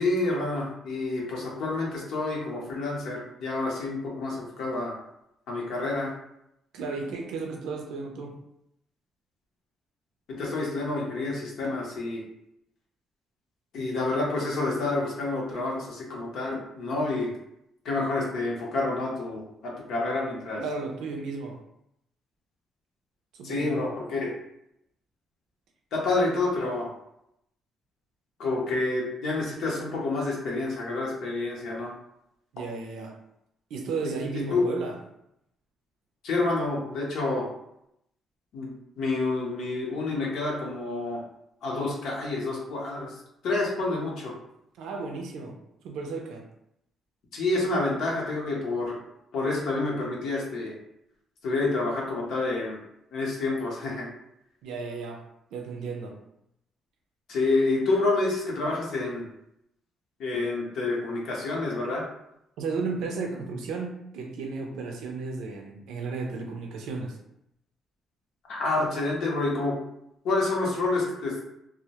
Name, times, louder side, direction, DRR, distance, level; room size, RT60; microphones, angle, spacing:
voice 1, 0.0-4.9 5.5-6.1 10.4-12.2 13.7-17.3 17.8-20.6 23.4-24.3 25.9-26.9 28.4-31.9 34.0-34.7 36.2-37.5 38.5-41.2 41.6-43.1 43.4-44.3 47.3-49.0 49.3-50.7 51.4-52.8 53.1-54.1 57.3-59.2 60.2-62.0 68.5-69.8 70.2-71.3, left 2 dB, 80° left, -3 dB, 0.7 m, -28 dB
voice 2, 6.7-8.4 20.5-21.6 23.3-23.9 32.5-33.2 33.7-35.0 44.8-45.6 45.8-46.5 54.6-55.3 55.5-56.2 62.6-67.2, right 4 dB, 85° right, 2 dB, 0.5 m, -34 dB
2.1 x 2.0 x 2.8 m, 0.79 s
cardioid pair, 90°, 0 cm